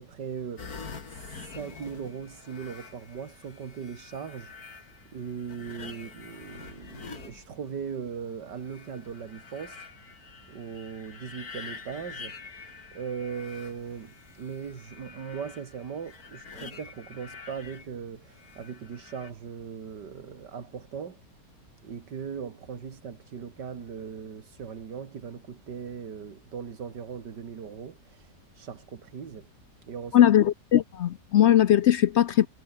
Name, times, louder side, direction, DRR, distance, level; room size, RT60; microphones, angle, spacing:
voice 1, 0.0-9.9 10.5-21.2 21.8-29.5 29.8-30.3, right 6 dB, 80° right, 2.5 m, -39 dB
sound 1, 0.6-8.0 8.5-17.9 18.3-19.3, left 5 dB, 60° left, 2.8 m, -46 dB
voice 2, 30.1-32.5, left 11 dB, 80° left, 0.6 m, -20 dB
omnidirectional pair, 1.8 m